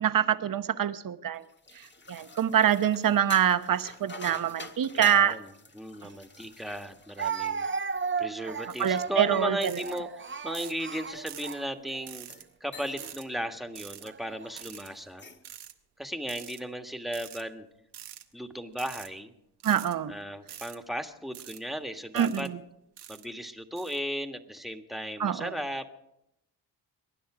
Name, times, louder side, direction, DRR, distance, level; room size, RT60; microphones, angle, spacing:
voice 1, 0.0-1.4 2.1-5.4 8.8-9.8 19.6-20.1 22.1-22.5 25.2-25.5, right 9 dB, 55° right, 11 dB, 1.1 m, -25 dB
sound 1, 1.4-8.2 8.6-11.6 12.1-12.5 12.7-13.2 13.5-13.8 15.0-15.5, left 3 dB, 25° left, 1.5 m, -46 dB
voice 2, 4.9-7.7 8.2-10.1 10.4-12.3 12.6-15.3 16.0-17.7 18.3-19.3 20.1-22.5 23.1-25.9, equal, ahead, 7 dB, 1.7 m, -36 dB
Speech, 6.0-6.1 7.2-12.1 12.8-13.1 14.0-14.6, right 6 dB, 30° right, 0.9 m, -35 dB
sound 2, 8.7-9.0 9.6-10.0 10.5-10.8 11.3-11.6 12.1-12.4 13.0-13.2 13.7-14.1 14.6-14.9 15.4-15.7 16.3-16.6 17.1-17.4 17.9-18.2 18.7-19.1 19.6-19.9 20.5-20.8 21.3-21.6 22.1-22.5 23.0-23.3 23.8-24.0, right 11 dB, 80° right, 1.2 m, -45 dB
23.5 x 10.0 x 5.0 m, 0.82 s
cardioid pair, 65°, 40 cm